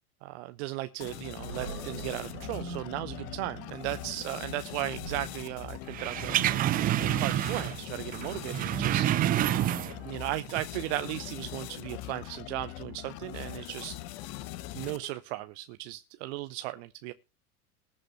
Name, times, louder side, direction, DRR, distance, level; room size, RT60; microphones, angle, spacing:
voice 1, 0.2-6.4 7.0-9.1 10.0-14.0 14.7-17.1, right 17 dB, 45° right, 0.8 m, -36 dB
sound 1, 1.0-15.2, left 15 dB, 45° left, 1.0 m, -42 dB
Animal, 1.4-8.5, right 4 dB, 80° right, 3.5 m, -45 dB
sound 2, 5.9-7.9 8.1-10.1 10.5-10.6, right 13 dB, 20° right, 0.5 m, -28 dB
20.0 x 7.7 x 3.0 m
figure-of-eight pair, 80°, 45 cm